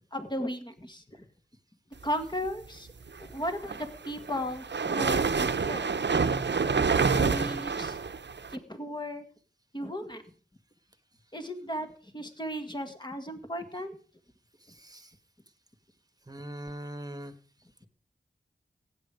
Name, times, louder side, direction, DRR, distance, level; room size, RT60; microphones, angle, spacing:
voice 1, 0.1-1.3 2.0-2.9 3.2-5.8 7.0-8.0 8.5-9.2 9.7-10.3 11.3-14.0, equal, 25° left, 8 dB, 1.9 m, -36 dB
sound 1, 3.5-8.6, right 5 dB, 70° right, 0.8 m, -27 dB
voice 2, 14.7-15.1 16.3-17.3, right 1 dB, 20° right, 11 dB, 1.5 m, -41 dB
15.5 x 9.8 x 5.1 m, 0.41 s
wide cardioid pair, 60°, 19 cm